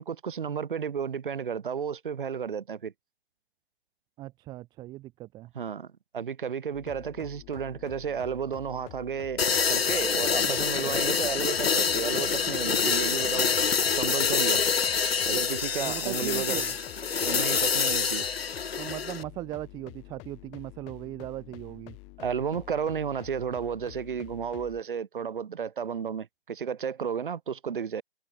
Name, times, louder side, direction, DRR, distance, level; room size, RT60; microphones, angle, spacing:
voice 1, 0.0-2.9 5.5-5.9 6.1-9.4 9.7-13.5 13.9-14.6 15.2-16.6 17.2-18.3 22.2-28.0, right 7 dB, 50° right, 5.0 m, -32 dB
voice 2, 4.2-5.5 10.4-11.0 12.9-13.0 15.8-16.8 18.8-22.0, right 16 dB, 10° right, 1.7 m, -39 dB
sound 1, 6.7-24.8, left 32 dB, 20° left, 4.5 m, -48 dB
sound 2, 9.4-19.2, left 6 dB, 65° left, 1.2 m, -26 dB
figure-of-eight pair, 150°, 33 cm